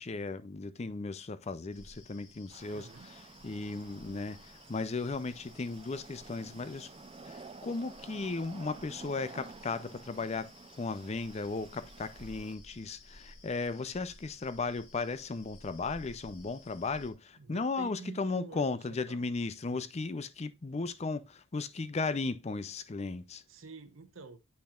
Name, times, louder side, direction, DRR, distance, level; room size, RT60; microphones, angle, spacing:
voice 1, 0.0-2.9 3.4-6.9 7.2-10.5 10.8-23.4, left 3 dB, 35° left, 0.5 m, -36 dB
sound 1, 1.7-17.1, left 2 dB, 70° left, 1.9 m, -56 dB
sound 2, 2.5-12.6, right 4 dB, 30° right, 0.4 m, -52 dB
voice 2, 2.7-3.1 17.4-19.2 19.7-19.8 23.5-24.4, right 4 dB, 90° right, 1.0 m, -48 dB
8.6 x 5.8 x 2.4 m
head